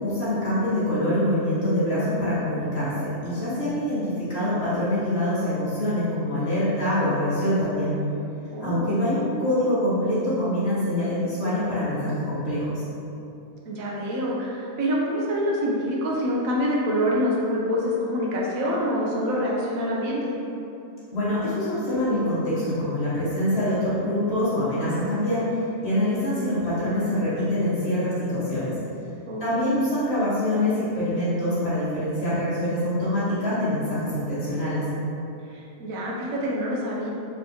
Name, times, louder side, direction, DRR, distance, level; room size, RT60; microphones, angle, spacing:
voice 1, 0.0-8.0 8.6-12.8 21.1-28.7 29.4-34.9, left 1 dB, 50° left, -11 dB, 1.6 m, -25 dB
voice 2, 8.5-9.0 13.7-20.3 29.3-29.8 35.5-37.1, equal, 80° right, -4 dB, 1.1 m, -26 dB
4.2 x 3.4 x 2.8 m, 2.8 s
omnidirectional pair, 1.4 m